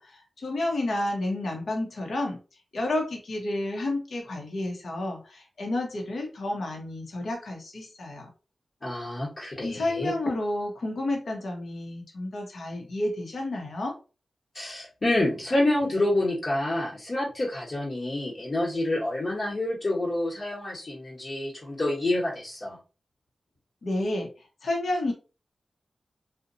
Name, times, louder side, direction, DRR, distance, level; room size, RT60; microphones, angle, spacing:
voice 1, 0.0-2.4 2.7-8.3 9.6-13.9 23.8-24.3 24.6-25.1, left 1 dB, 75° left, 1 dB, 0.7 m, -30 dB
voice 2, 8.8-10.1 14.5-22.8, left 1 dB, 50° left, -5 dB, 1.0 m, -28 dB
2.8 x 2.1 x 2.6 m, 0.33 s
cardioid pair, 65°, 0 cm